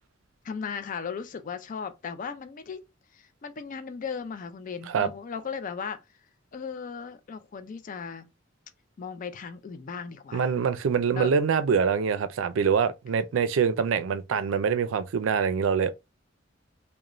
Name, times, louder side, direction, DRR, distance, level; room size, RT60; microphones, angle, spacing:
voice 1, 0.4-2.8 3.1-6.0 6.5-8.3 9.0-10.5 11.1-11.3, left 6 dB, 45° left, 0.4 m, -36 dB
voice 2, 10.3-15.9, right 6 dB, 85° right, 0.4 m, -25 dB
2.4 x 2.1 x 3.0 m
head